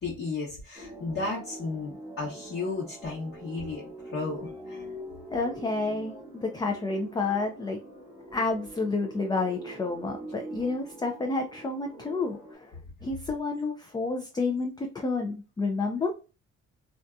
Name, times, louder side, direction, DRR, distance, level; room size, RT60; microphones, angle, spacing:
voice 1, 0.0-3.8 4.1-4.4 4.7-4.8 6.0-6.2, left 3 dB, 45° left, -4 dB, 0.9 m, -34 dB
sound 1, 0.8-12.5, equal, 10° right, 1.0 m, -44 dB
voice 2, 5.3-6.1 6.4-7.8 8.3-16.1, left 3 dB, 15° left, 3 dB, 0.3 m, -30 dB
2.6 x 2.3 x 2.3 m, 0.33 s
cardioid pair, 90°, 30 cm